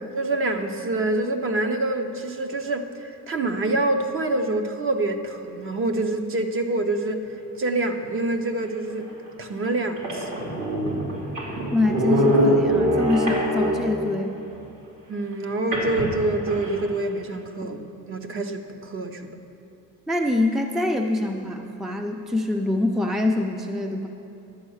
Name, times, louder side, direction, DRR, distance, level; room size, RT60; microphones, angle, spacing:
voice 1, 0.1-7.2 7.6-9.1 9.4-10.5 15.1-19.3, right 2 dB, 40° right, 6 dB, 0.9 m, -26 dB
sound 1, 9.0-9.1 9.7-9.8 10.0-14.0 15.7-16.8, equal, 70° right, 3.0 m, -23 dB
voice 2, 11.7-14.4 20.1-24.1, left 2 dB, ahead, 4 dB, 0.5 m, -25 dB
11.5 x 7.7 x 6.4 m, 2.9 s
cardioid pair, 135°, 32 cm